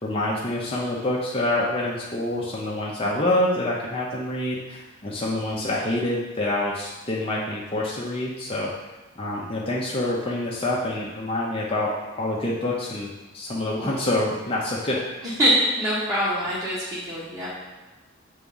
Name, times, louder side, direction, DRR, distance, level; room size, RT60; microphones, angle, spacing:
voice 1, 0.0-8.7 9.1-11.9 12.2-15.1, left 1 dB, 30° left, -5 dB, 0.7 m, -26 dB
voice 2, 15.4-17.5, equal, 15° right, -11 dB, 1.4 m, -23 dB
7.3 x 3.6 x 5.5 m, 1.1 s
head